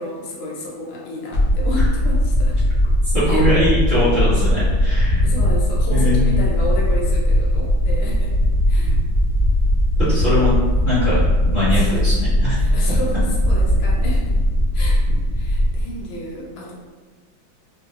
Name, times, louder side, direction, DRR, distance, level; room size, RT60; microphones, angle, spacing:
voice 1, 0.0-2.6 3.2-3.4 5.2-8.3 8.7-9.0 11.7-12.0 12.6-13.2 13.5-14.4 14.7-15.1 15.3-16.7, left 1 dB, 80° left, -3 dB, 1.5 m, -31 dB
sound 1, 1.3-15.8, equal, 60° left, 0.9 m, -18 dB
voice 2, 3.1-5.2 5.9-6.4 10.0-10.5 10.8-12.6, left 1 dB, 35° left, -12 dB, 1.3 m, -21 dB
4.3 x 2.2 x 2.4 m, 1.3 s
omnidirectional pair, 2.3 m